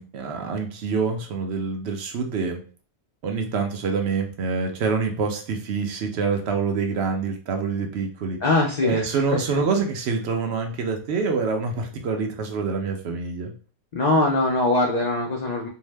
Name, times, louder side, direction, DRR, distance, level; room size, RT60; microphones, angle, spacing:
voice 1, 0.0-2.6 3.2-8.4 8.8-13.5, right 5 dB, 70° right, 4 dB, 0.8 m, -26 dB
voice 2, 8.4-9.6 13.9-15.7, left 2 dB, 70° left, 0 dB, 0.4 m, -22 dB
2.6 x 2.0 x 3.1 m, 0.40 s
omnidirectional pair, 1.2 m